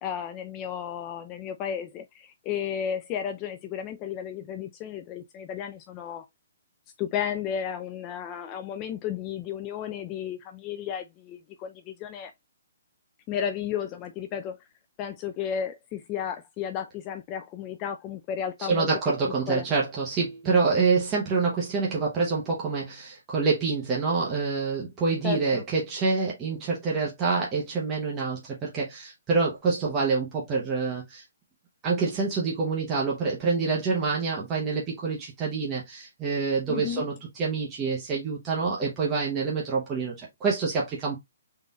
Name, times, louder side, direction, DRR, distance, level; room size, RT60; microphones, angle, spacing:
voice 1, 0.0-6.3 7.0-12.3 13.3-14.6 15.0-19.1 19.5-19.7 25.2-25.6 36.7-37.1, left 8 dB, 20° left, 0.3 m, -33 dB
voice 2, 18.6-31.2 31.8-41.2, right 4 dB, 15° right, 0.8 m, -27 dB
3.8 x 2.5 x 4.0 m
hypercardioid pair, 165°, 0 cm